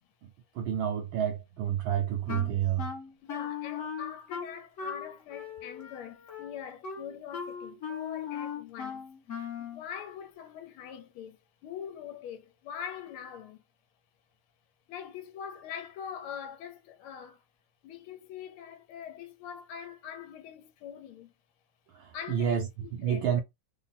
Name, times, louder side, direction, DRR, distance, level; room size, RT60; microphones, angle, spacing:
voice 1, 0.5-2.9 21.9-22.7 22.9-23.4, right 9 dB, 75° right, 1.3 m, -29 dB
Wind instrument woodwind instrument, 2.3-9.8, left 7 dB, 50° left, 0.9 m, -38 dB
voice 2, 3.2-9.1 9.3-13.6 14.9-17.4 17.8-21.3 22.1-23.4, left 8 dB, 75° left, 1.6 m, -43 dB
3.8 x 2.2 x 4.1 m
omnidirectional pair, 2.4 m